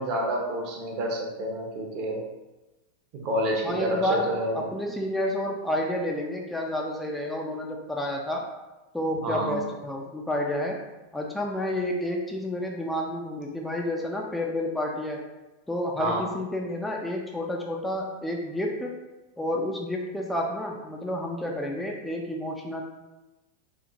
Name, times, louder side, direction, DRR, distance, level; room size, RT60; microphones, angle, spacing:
voice 1, 0.0-2.2 3.1-4.7 9.2-9.6 16.0-16.2, right 1 dB, 50° right, 0 dB, 0.7 m, -28 dB
voice 2, 3.6-8.4 8.9-10.8 11.1-15.2 15.7-18.9 19.4-22.8, left 1 dB, 5° left, 0 dB, 0.4 m, -30 dB
3.0 x 2.1 x 2.4 m, 1.1 s
hypercardioid pair, 100°, 0 cm